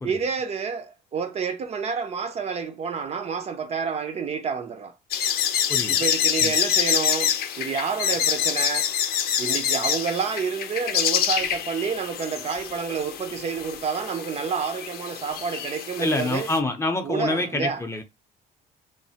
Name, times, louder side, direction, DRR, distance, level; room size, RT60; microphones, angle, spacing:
voice 1, 0.0-4.9 5.9-8.9 9.4-16.5 17.0-17.8, right 6 dB, 40° right, 0.4 m, -29 dB
sound 1, 5.1-16.6, left 9 dB, 65° left, 0.5 m, -26 dB
voice 2, 16.0-18.0, left 2 dB, 15° left, 0.5 m, -26 dB
3.1 x 2.0 x 2.7 m
cardioid pair, 110°, 17 cm